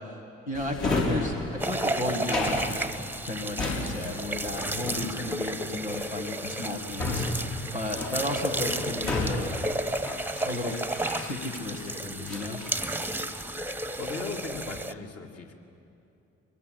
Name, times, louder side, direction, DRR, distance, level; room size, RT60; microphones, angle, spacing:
voice 1, 0.5-1.3 1.6-2.9 3.2-9.5 10.4-10.8 11.2-12.6, left 2 dB, 85° left, -1 dB, 1.7 m, -33 dB
Drawer open or close, 0.5-11.8 12.2-13.5 13.9-14.4, left 2 dB, 65° left, 4.7 m, -34 dB
sound 1, 1.6-14.9, right 1 dB, 5° right, 1.1 m, -33 dB
voice 2, 14.0-15.5, left 4 dB, 45° left, 2 dB, 2.7 m, -37 dB
24.0 x 22.0 x 8.4 m, 2.8 s
figure-of-eight pair, 40°, 33 cm